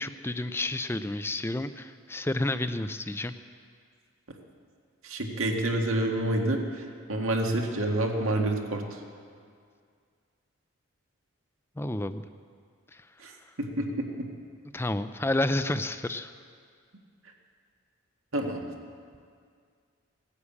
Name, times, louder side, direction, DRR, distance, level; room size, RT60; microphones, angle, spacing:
voice 1, 0.0-3.3 11.8-12.2 12.9-13.1 14.7-16.3, left 1 dB, 10° left, 11 dB, 0.4 m, -30 dB
voice 2, 5.0-9.0 13.2-13.3 13.6-14.3 18.3-18.6, right 1 dB, 75° right, 2 dB, 1.8 m, -28 dB
17.0 x 9.8 x 8.4 m, 2.2 s
head